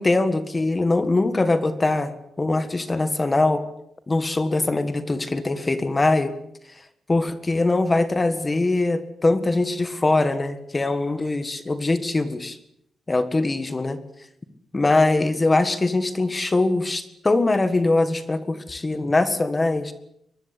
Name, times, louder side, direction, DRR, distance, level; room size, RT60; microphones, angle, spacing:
voice 1, 0.0-2.1 2.4-3.6 4.1-6.3 7.1-12.6 13.1-14.0 14.7-19.9, left 2 dB, 20° left, 11 dB, 1.8 m, -22 dB
23.5 x 22.0 x 8.5 m, 0.76 s
wide cardioid pair, 160°, 0 cm